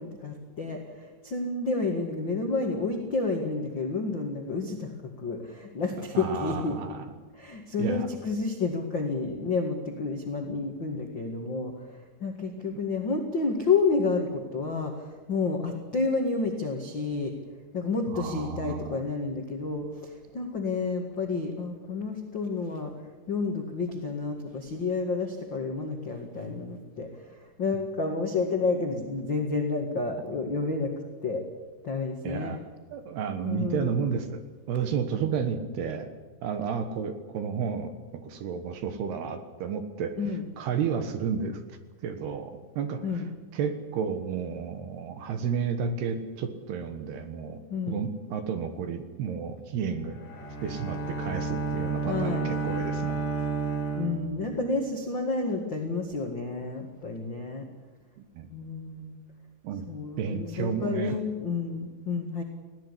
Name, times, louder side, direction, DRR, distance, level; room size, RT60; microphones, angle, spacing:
voice 1, 0.0-6.8 7.3-17.3 17.7-30.9 31.2-31.4 31.8-32.5 33.4-34.0 40.2-40.4 43.0-43.3 47.7-48.0 52.0-52.5 54.0-57.6 58.5-59.2 59.9-62.4, left 4 dB, 90° left, 2 dB, 1.0 m, -30 dB
voice 2, 6.1-7.1 7.8-8.1 18.1-19.0 32.2-32.6 32.9-34.4 34.7-36.1 36.4-40.2 40.6-41.6 42.0-43.2 43.5-47.6 47.9-50.2 50.6-53.2 58.3-58.5 59.6-59.9 60.2-61.2, right 6 dB, 65° right, 9 dB, 2.9 m, -32 dB
Bowed string instrument, 50.1-54.8, right 4 dB, 60° left, 7.5 m, -31 dB
20.0 x 17.0 x 9.9 m, 1.2 s
omnidirectional pair, 5.8 m